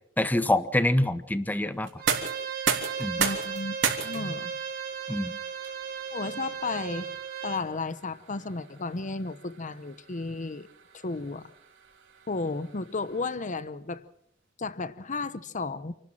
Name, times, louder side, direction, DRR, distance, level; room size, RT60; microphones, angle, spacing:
voice 1, 0.2-1.9 3.0-3.2 5.1-5.3, left 1 dB, 10° left, 12 dB, 1.0 m, -25 dB
sound 1, 1.8-13.6, right 6 dB, 70° right, 3.4 m, -36 dB
Bowed string instrument, 2.0-7.6, right 7 dB, 50° right, 3.7 m, -36 dB
voice 2, 3.2-3.8 4.0-4.5 6.1-7.1 7.4-10.7 10.9-11.5 12.3-14.0 14.6-16.0, left 3 dB, 40° left, 14 dB, 0.9 m, -33 dB
28.5 x 13.0 x 7.5 m, 0.69 s
head